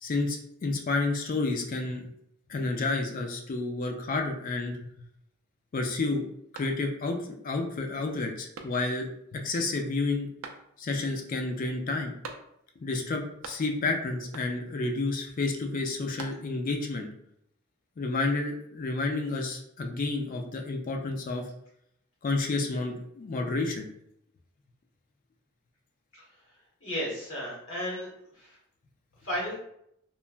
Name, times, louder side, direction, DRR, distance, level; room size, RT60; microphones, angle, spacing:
voice 1, 0.0-2.0 2.5-4.8 5.7-6.2 6.5-10.3 10.8-12.1 12.8-17.1 18.0-21.4 22.2-23.9, left 3 dB, 40° left, 3 dB, 0.4 m, -30 dB
sound 1, 6.5-7.2 7.6-7.7 8.5-9.2 10.4-11.0 12.2-12.8 13.1-13.9 14.3-14.8 15.8-16.8, right 4 dB, 70° right, 0.4 m, -46 dB
voice 2, 26.8-28.1 28.3-28.6 29.2-29.6, equal, 75° left, -6 dB, 1.4 m, -33 dB
3.0 x 2.2 x 2.4 m, 0.74 s
head